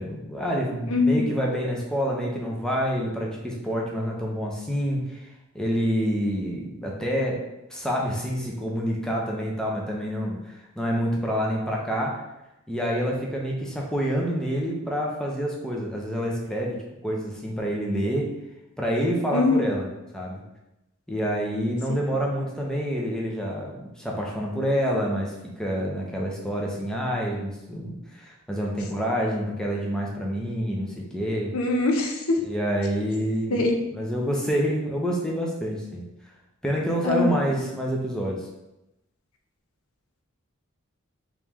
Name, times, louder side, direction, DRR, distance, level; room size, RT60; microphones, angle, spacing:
voice 1, 0.0-5.3 5.5-12.2 12.7-18.3 18.8-20.4 21.1-31.5 32.4-33.6 33.9-36.0 36.6-38.5, equal, 5° left, -2 dB, 0.5 m, -27 dB
voice 2, 0.9-1.3 19.3-19.6 31.5-32.4 33.5-33.8 37.0-37.4, left 3 dB, 80° left, 2 dB, 0.6 m, -22 dB
3.0 x 3.0 x 3.5 m, 0.92 s
head